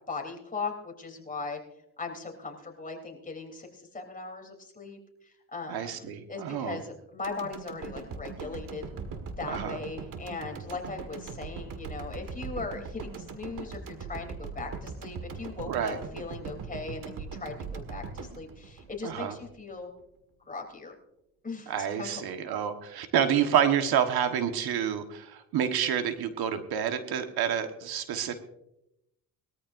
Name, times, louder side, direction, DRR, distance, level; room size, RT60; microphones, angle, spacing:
voice 1, 0.1-1.6 2.0-8.9 9.4-19.9 20.5-20.9 21.4-22.2, left 4 dB, 20° left, 2 dB, 3.4 m, -39 dB
voice 2, 5.7-6.8 9.5-9.8 15.7-16.0 19.0-19.3 21.7-28.4, right 8 dB, 75° right, 7 dB, 1.5 m, -28 dB
sound 1, 7.2-19.5 19.8-19.9, right 5 dB, 55° right, 1.9 m, -40 dB
21.0 x 14.0 x 2.6 m, 0.82 s
cardioid pair, 95°, 37 cm